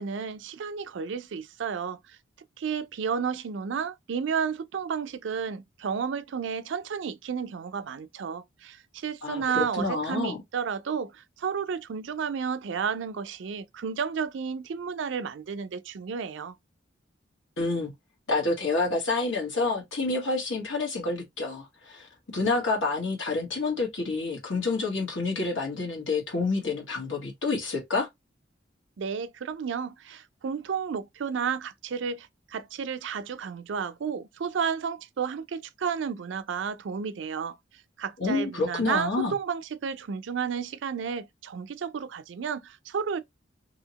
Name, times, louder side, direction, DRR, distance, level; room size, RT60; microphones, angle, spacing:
voice 1, 0.0-2.2 2.6-16.6 29.0-37.6 38.0-43.2, right 6 dB, 75° right, 0.4 m, -32 dB
voice 2, 9.2-10.4 17.6-17.9 18.3-22.1 22.3-28.1 38.2-39.3, left 3 dB, 85° left, 1.4 m, -28 dB
2.8 x 2.8 x 2.8 m
head